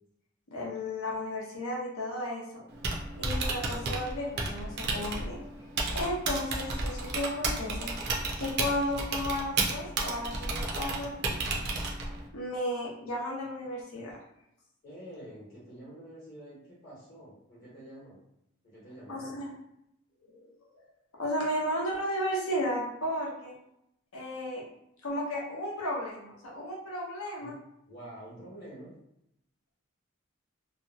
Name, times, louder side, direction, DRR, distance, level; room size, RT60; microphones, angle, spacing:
voice 1, 0.5-2.6 3.1-5.4 5.9-7.9 8.4-11.6 12.3-14.2 19.1-19.5 20.2-20.4 20.7-20.8 21.2-23.6 24.1-24.6 25.0-27.5, left 1 dB, 85° left, -3 dB, 0.8 m, -34 dB
Typing, 2.7-12.3, right 3 dB, 50° right, 0.4 m, -33 dB
voice 2, 14.8-18.2 18.6-19.4 27.4-27.5 27.9-28.9, right 1 dB, 45° left, -8 dB, 1.0 m, -47 dB
2.8 x 2.1 x 2.7 m, 0.79 s
head